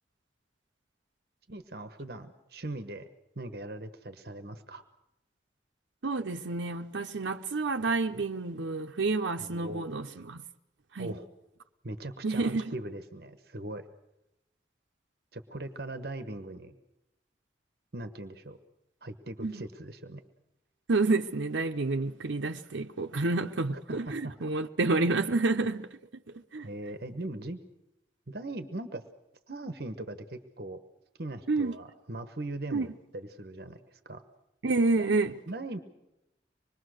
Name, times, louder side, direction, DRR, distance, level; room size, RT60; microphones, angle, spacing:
voice 1, 1.5-3.1 3.3-4.8 9.4-9.9 11.0-11.2 11.8-13.9 15.3-16.7 17.9-18.6 19.0-20.2 23.7-24.0 24.2-24.3 26.6-27.6 28.3-29.0 29.5-30.8 31.2-34.2 35.0-35.2 35.5-35.8, right 2 dB, 55° right, 1.2 m, -40 dB
voice 2, 6.0-10.5 10.9-11.1 12.2-12.7 19.4-19.6 20.9-26.0 26.3-26.7 31.5-31.8 32.7-32.9 34.6-35.3, right 3 dB, 90° right, 0.8 m, -29 dB
25.5 x 21.5 x 6.5 m
head